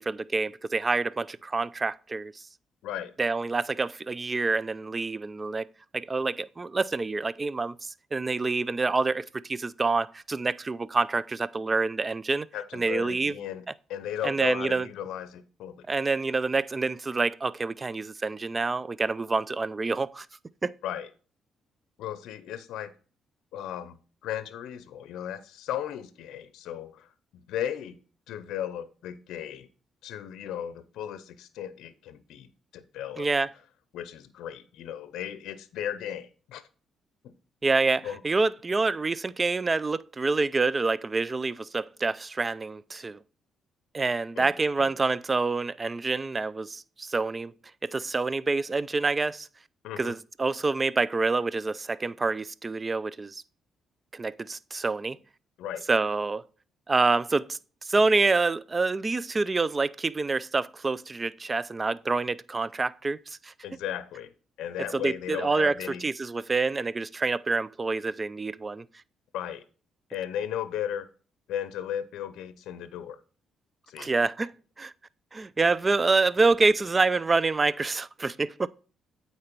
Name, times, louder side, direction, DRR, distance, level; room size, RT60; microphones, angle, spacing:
voice 1, 0.0-2.4 3.2-5.7 5.9-12.5 12.7-13.3 14.2-14.9 15.9-20.3 20.6-20.7 33.2-33.5 37.6-43.2 43.9-47.5 47.8-49.5 50.0-53.4 54.1-55.2 55.9-56.4 56.9-63.5 64.9-68.8 74.0-74.9 75.3-78.7, right 3 dB, 25° right, 0.4 m, -27 dB
voice 2, 12.5-13.6 13.9-15.9 20.8-21.1 22.0-22.9 23.5-24.0 24.2-27.1 27.5-28.0 28.3-29.7 30.0-32.5 32.7-33.3 33.9-36.7 38.0-38.2 44.4-44.5 44.8-44.9 49.8-50.1 55.6-55.8 63.6-64.3 64.6-66.0 69.3-69.6 70.1-71.1 71.5-73.2 73.9-74.1, left 10 dB, 85° left, 0.6 m, -35 dB
8.7 x 4.3 x 4.5 m
cardioid pair, 90°, 0 cm